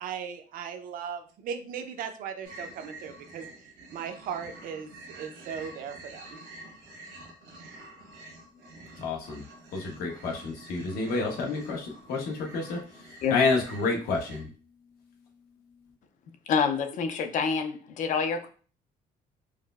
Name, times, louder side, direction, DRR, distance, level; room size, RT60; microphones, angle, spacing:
voice 1, 0.0-3.5 3.9-6.5, right 7 dB, 60° right, 7 dB, 0.5 m, -38 dB
sound 1, 2.4-14.4, right 2 dB, 80° right, 1.1 m, -48 dB
voice 2, 9.0-9.5 9.7-14.5, left 4 dB, 70° left, 1 dB, 1.0 m, -29 dB
voice 3, 16.5-18.5, left 6 dB, 55° left, 7 dB, 0.5 m, -27 dB
4.7 x 2.0 x 2.3 m, 0.39 s
cardioid pair, 140°, 16 cm